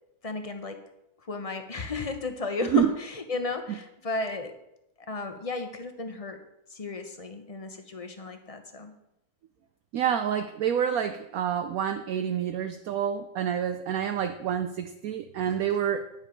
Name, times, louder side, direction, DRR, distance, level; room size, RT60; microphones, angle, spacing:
voice 1, 0.2-0.8 1.3-4.5 5.0-6.4 6.7-8.9, left 3 dB, 30° left, 7 dB, 0.7 m, -34 dB
voice 2, 9.9-16.1, right 9 dB, 70° right, 8 dB, 0.9 m, -28 dB
10.0 x 7.5 x 5.1 m, 0.83 s
omnidirectional pair, 1.8 m